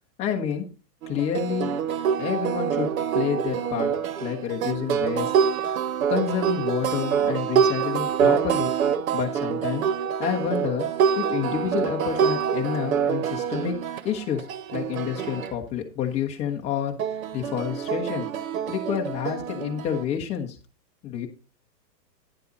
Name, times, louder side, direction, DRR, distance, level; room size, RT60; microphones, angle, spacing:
voice 1, 0.2-0.6 1.1-1.7 2.2-3.9 4.2-5.3 6.1-8.7 9.1-9.8 10.2-10.9 11.2-13.7 14.0-14.4 14.7-17.0 17.3-18.3 18.7-20.5 21.0-21.3, left 8 dB, 15° left, 1 dB, 1.0 m, -28 dB
sound 1, 1.0-15.5 17.0-20.0, right 7 dB, 55° right, 0.8 m, -26 dB
9.8 x 7.5 x 4.0 m, 0.34 s
hypercardioid pair, 150°, 50 cm